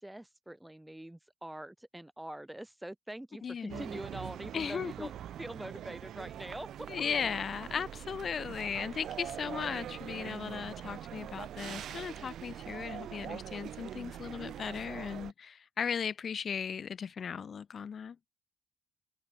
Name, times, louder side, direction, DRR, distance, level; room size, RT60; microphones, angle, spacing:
voice 1, 0.0-7.0, right 1 dB, 5° right, 0.8 m, -44 dB
voice 2, 3.4-3.8 4.5-5.1 6.9-18.2, left 7 dB, 50° left, 0.3 m, -37 dB
sound 1, 3.7-15.3, right 11 dB, 70° right, 1.0 m, -43 dB
cardioid pair, 90°, 0 cm